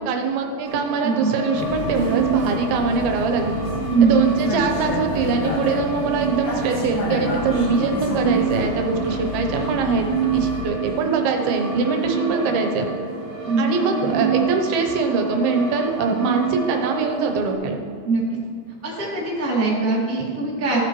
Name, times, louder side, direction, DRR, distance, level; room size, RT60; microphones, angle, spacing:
voice 1, 0.0-3.6 4.0-10.1 10.3-12.9 13.6-17.8, right 4 dB, 85° right, 3 dB, 2.7 m, -23 dB
sound 1, 0.7-17.5, right 6 dB, 45° right, 2.2 m, -28 dB
Vehicle, 1.5-10.7, left 2 dB, 80° left, 1.2 m, -29 dB
voice 2, 13.4-13.8 18.0-18.2 18.8-20.8, right 4 dB, 25° right, -6 dB, 2.0 m, -21 dB
15.0 x 7.4 x 3.0 m, 2.1 s
omnidirectional pair, 4.4 m